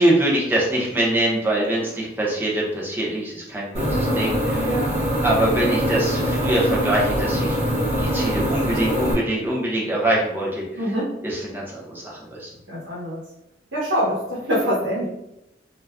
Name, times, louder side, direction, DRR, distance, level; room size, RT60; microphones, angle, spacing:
voice 1, 0.0-4.7 5.2-7.6 8.0-10.9 11.2-12.5, right 1 dB, 10° right, -4 dB, 0.6 m, -23 dB
sound 1, 3.7-9.1, equal, 40° right, 0.9 m, -23 dB
voice 2, 4.6-5.0 10.7-11.2 12.7-13.2 13.7-15.1, equal, 85° right, -8 dB, 0.9 m, -24 dB
2.4 x 2.2 x 3.3 m, 0.85 s
head